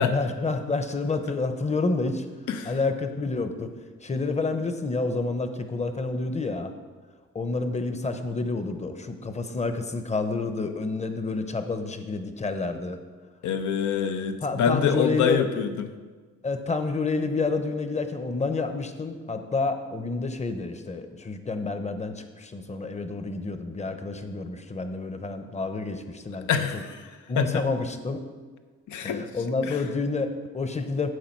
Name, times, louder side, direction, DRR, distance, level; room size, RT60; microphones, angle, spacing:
voice 1, 0.0-2.2 2.6-3.7 4.0-6.7 7.3-13.0 14.4-15.5 16.4-26.7 27.3-28.2 29.0-31.1, left 3 dB, 20° left, 8 dB, 0.8 m, -29 dB
voice 2, 13.4-15.9 26.5-27.0 27.4-27.6 28.9-29.2 29.6-29.8, left 7 dB, 75° left, 8 dB, 0.8 m, -25 dB
9.5 x 6.9 x 4.5 m, 1.4 s
cardioid pair, 90°, 30 cm